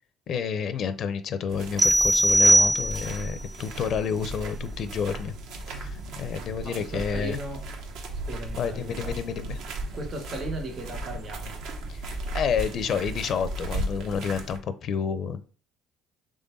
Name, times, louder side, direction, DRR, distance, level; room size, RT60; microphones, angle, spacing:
voice 1, 0.3-5.3 5.7-7.4 8.5-9.6 11.9-12.0 12.3-15.4, left 6 dB, 55° left, 12 dB, 0.5 m, -29 dB
sound 1, 1.5-14.6, right 2 dB, 75° right, 0.9 m, -36 dB
sound 2, 1.8-3.3, right 1 dB, 10° right, 0.3 m, -20 dB
voice 2, 6.6-7.6 8.2-9.1 9.9-11.6, right 1 dB, 50° right, 2 dB, 1.9 m, -36 dB
3.8 x 3.3 x 4.0 m, 0.39 s
supercardioid pair, 85°, 0 cm